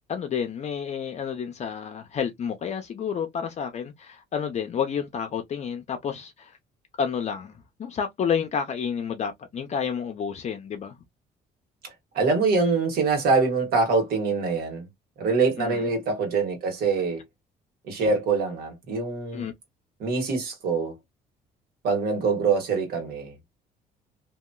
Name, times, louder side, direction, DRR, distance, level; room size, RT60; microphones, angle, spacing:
voice 1, 0.1-6.6 7.0-11.0 15.6-15.9 19.3-19.5, left 7 dB, 40° left, 0.6 m, -30 dB
voice 2, 12.1-14.9 15.2-17.2 17.9-19.4 20.0-20.9 21.8-23.3, right 4 dB, 65° right, 1.6 m, -24 dB
2.8 x 2.8 x 2.2 m
cardioid pair, 110°, 17 cm